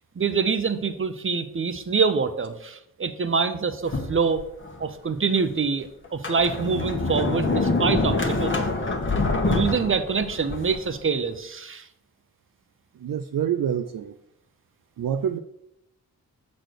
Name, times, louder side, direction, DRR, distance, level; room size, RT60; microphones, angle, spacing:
voice 1, 0.2-4.5 4.8-8.6 9.4-11.9, right 5 dB, 35° right, 10 dB, 0.8 m, -25 dB
Sliding door, 3.9-4.8 5.4-5.5 6.0-10.9, left 2 dB, 30° left, 1.2 m, -25 dB
voice 2, 13.0-14.1 15.0-15.4, right 9 dB, 60° right, 8 dB, 0.5 m, -26 dB
6.4 x 4.2 x 6.5 m, 0.79 s
cardioid pair, 55°, 38 cm